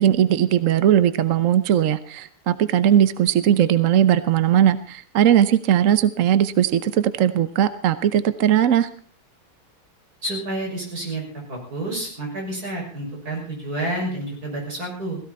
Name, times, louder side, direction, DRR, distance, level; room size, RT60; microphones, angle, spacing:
voice 1, 0.0-8.9, right 10 dB, 65° right, 13 dB, 0.8 m, -19 dB
voice 2, 10.2-11.2 11.5-15.2, right 1 dB, 40° right, -1 dB, 6.7 m, -29 dB
17.0 x 16.0 x 4.3 m, 0.41 s
omnidirectional pair, 2.4 m